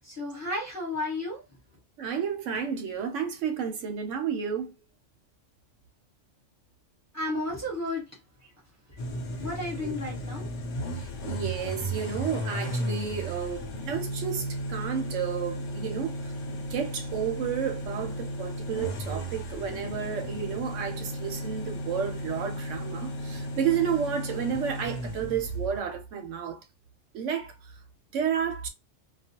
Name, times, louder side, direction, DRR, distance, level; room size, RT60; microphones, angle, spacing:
voice 1, 0.0-1.4 7.1-8.0 9.1-10.5, left 2 dB, 15° left, 1.1 m, -33 dB
voice 2, 2.0-4.7 9.8-9.9 11.0-16.2 16.5-26.6 27.1-27.5 28.1-28.7, right 7 dB, 75° right, 0.9 m, -31 dB
sound 1, 9.0-25.8, equal, 70° left, 1.0 m, -35 dB
2.4 x 2.2 x 2.8 m
omnidirectional pair, 1.3 m